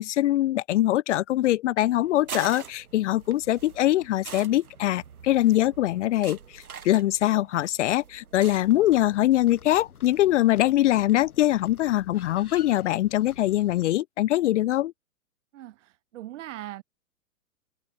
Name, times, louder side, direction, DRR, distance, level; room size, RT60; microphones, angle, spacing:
voice 1, 0.0-14.9, left 14 dB, 55° left, 0.7 m, -23 dB
sound 1, 1.9-9.9, right 7 dB, 80° right, 1.7 m, -44 dB
sound 2, 8.3-13.8, left 7 dB, 80° left, 1.9 m, -49 dB
voice 2, 15.5-16.8, right 14 dB, 55° right, 1.9 m, -40 dB
figure-of-eight pair, 110°, 43 cm